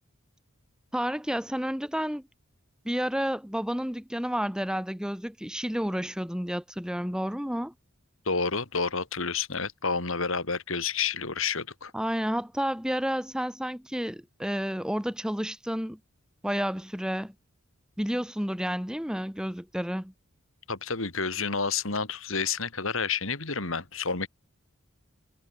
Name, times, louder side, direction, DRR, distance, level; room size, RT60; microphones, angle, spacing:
voice 1, 0.9-2.2 2.8-7.7 11.9-16.0 16.4-17.3 18.0-20.1, equal, 5° right, 1.5 m, -30 dB
voice 2, 8.3-11.9 20.7-24.3, left 5 dB, 70° left, 2.9 m, -29 dB
head